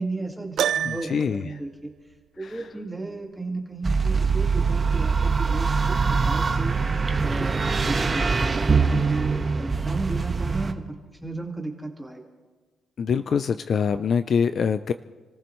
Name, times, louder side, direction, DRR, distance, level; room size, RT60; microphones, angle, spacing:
voice 1, 0.0-1.9 2.4-6.8 7.2-10.8 11.2-12.3, right 2 dB, 5° right, 0 dB, 2.1 m, -34 dB
Piano, 0.6-1.4, right 9 dB, 65° right, 0.4 m, -26 dB
voice 2, 0.9-1.4 2.4-2.5 13.0-14.9, left 6 dB, 55° left, 11 dB, 0.5 m, -24 dB
sound 1, 3.8-10.7, right 4 dB, 30° right, 1.3 m, -23 dB
28.5 x 15.0 x 3.2 m, 1.3 s
cardioid pair, 90°, 0 cm